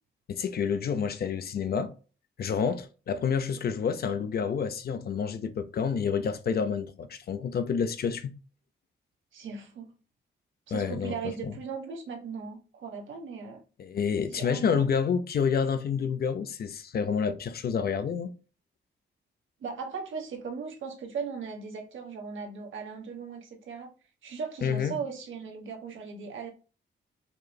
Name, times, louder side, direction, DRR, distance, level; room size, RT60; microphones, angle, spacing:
voice 1, 0.3-1.9 2.4-8.3 10.7-11.2 11.4-11.5 13.8-18.3 24.6-24.9, left 6 dB, 50° left, 0.6 m, -29 dB
voice 2, 9.3-9.9 10.7-13.6 14.4-14.9 19.6-23.9 24.2-26.5, right 5 dB, 80° right, 1.3 m, -38 dB
5.3 x 3.1 x 2.3 m
wide cardioid pair, 160°, 20 cm